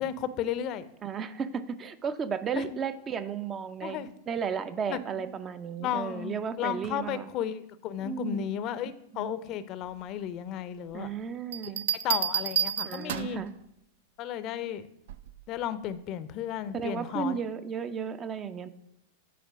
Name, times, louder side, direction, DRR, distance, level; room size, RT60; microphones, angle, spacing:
voice 1, 0.0-0.9 2.6-2.8 3.8-4.1 4.9-5.3 5.8-11.1 11.6-11.7 12.0-13.4 14.2-14.9 15.5-17.4, left 10 dB, 45° left, 14 dB, 0.6 m, -34 dB
voice 2, 1.0-4.0 4.3-7.3 8.0-8.5 9.1-9.4 10.9-11.8 12.8-13.5 16.7-18.7, right 6 dB, 30° right, 12 dB, 0.6 m, -34 dB
Bell, 11.5-13.5 15.1-15.4, right 9 dB, 70° right, 0.4 m, -30 dB
8.4 x 4.5 x 6.0 m, 0.82 s
hypercardioid pair, 100°, 0 cm